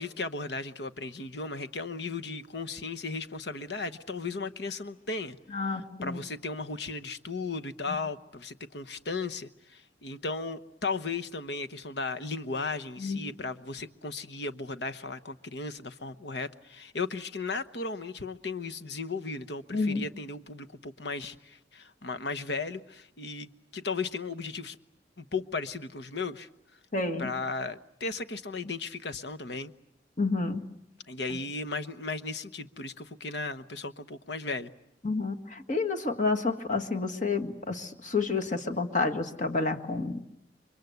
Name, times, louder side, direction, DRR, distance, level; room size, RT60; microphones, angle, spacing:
voice 1, 0.0-5.4 5.7-24.8 25.2-26.5 27.2-29.7 31.1-34.7, left 3 dB, 70° left, 12 dB, 1.1 m, -36 dB
voice 2, 5.5-6.2 7.9-8.0 13.0-13.2 19.7-20.0 26.9-27.3 30.2-30.7 31.3-31.4 35.0-40.2, left 3 dB, 45° left, 5 dB, 1.9 m, -29 dB
29.5 x 24.0 x 8.1 m, 0.77 s
head